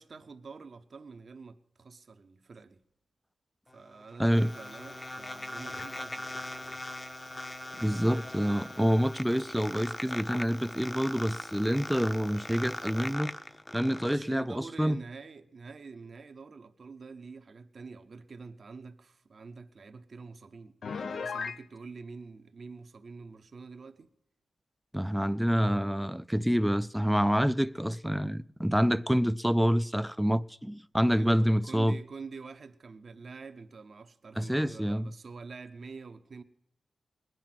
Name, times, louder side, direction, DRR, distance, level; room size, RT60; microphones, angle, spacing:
voice 1, 0.0-2.8 3.7-6.8 7.9-8.4 14.0-24.1 31.1-36.4, right 4 dB, 60° right, 0.9 m, -46 dB
sound 1, 3.7-14.2, left 1 dB, 25° left, 0.8 m, -40 dB
Fire, 4.2-13.5, left 3 dB, 85° left, 3.5 m, -58 dB
voice 2, 4.2-4.5 7.8-13.3 13.7-15.0 24.9-32.0 34.4-35.1, equal, 5° right, 0.4 m, -27 dB
Piano, 20.8-21.6, left 5 dB, 70° left, 0.5 m, -35 dB
20.0 x 9.2 x 5.9 m
cardioid pair, 55°, 0 cm